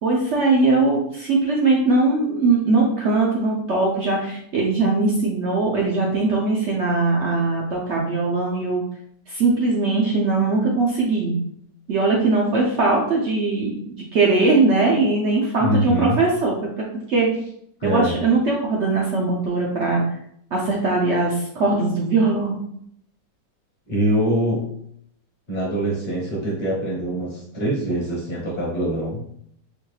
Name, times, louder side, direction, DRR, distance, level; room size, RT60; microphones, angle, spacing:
voice 1, 0.0-8.8 9.3-11.4 11.9-17.3 17.8-20.0 20.5-22.6, right 3 dB, 75° right, -2 dB, 0.6 m, -20 dB
voice 2, 15.6-16.2 17.8-18.1 23.9-24.7 25.5-29.2, right 1 dB, 35° left, -5 dB, 0.7 m, -23 dB
4.7 x 2.3 x 3.2 m, 0.70 s
omnidirectional pair, 2.0 m